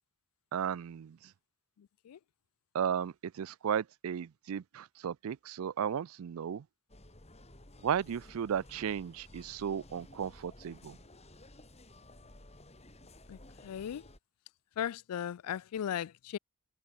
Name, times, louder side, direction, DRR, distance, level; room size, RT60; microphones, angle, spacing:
voice 1, 0.5-1.3 2.7-6.7 7.8-11.0, right 8 dB, 70° right, 0.4 m, -35 dB
voice 2, 1.8-2.2 13.3-14.0 14.8-16.4, left 9 dB, 90° left, 0.3 m, -37 dB
sound 1, 6.9-14.2, left 1 dB, 30° left, 4.0 m, -55 dB
head